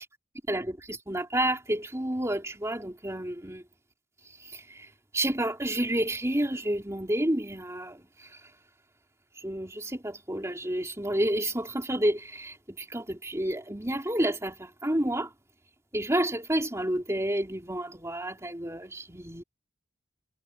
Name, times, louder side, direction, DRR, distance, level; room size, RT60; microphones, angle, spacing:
voice 1, 0.5-3.6 4.2-8.5 9.4-15.3 15.9-19.4, right 1 dB, 15° right, 3.4 m, -30 dB
head